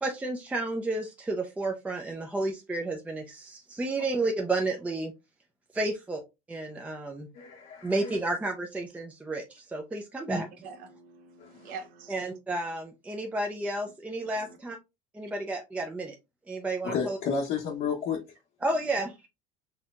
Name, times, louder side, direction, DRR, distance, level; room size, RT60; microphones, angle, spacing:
voice 1, 0.0-5.1 5.7-6.2 6.5-7.3 7.8-10.5 12.1-14.8 15.1-16.1 16.5-17.2 18.6-19.3, right 2 dB, 10° right, 0.5 m, -31 dB
voice 2, 7.3-8.2 11.4-11.7 16.8-18.2, left 6 dB, 65° left, 0.9 m, -32 dB
voice 3, 10.3-12.1 14.3-14.6, right 5 dB, 65° right, 0.9 m, -45 dB
4.2 x 2.8 x 2.4 m
cardioid pair, 125°, 16 cm